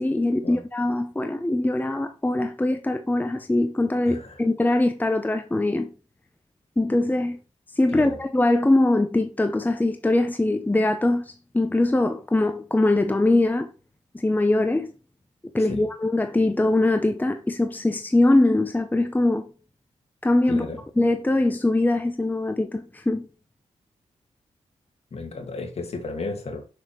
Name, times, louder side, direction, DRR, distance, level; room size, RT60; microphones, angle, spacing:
voice 1, 0.0-5.9 6.8-7.4 7.8-13.7 14.1-14.9 15.5-19.4 20.2-20.7 21.0-23.3, left 2 dB, 15° left, 0.8 m, -22 dB
voice 2, 4.1-4.4 7.9-8.2 15.6-15.9 20.5-20.8 25.1-26.6, left 3 dB, 55° left, 2.1 m, -34 dB
6.4 x 6.3 x 3.2 m
cardioid pair, 60°, 12 cm